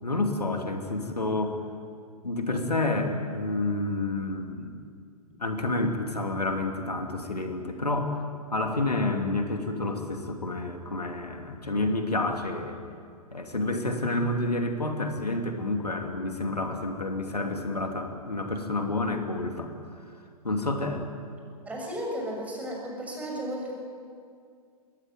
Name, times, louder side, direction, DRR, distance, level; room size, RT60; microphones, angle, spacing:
voice 1, 0.0-1.6 2.2-4.8 5.4-8.2 8.5-12.8 13.3-19.7 20.4-21.0, left 2 dB, 80° left, 4 dB, 2.7 m, -29 dB
voice 2, 21.6-23.7, equal, 5° right, -1 dB, 6.5 m, -34 dB
22.0 x 20.5 x 9.4 m, 2.3 s
figure-of-eight pair, 115°, 20 cm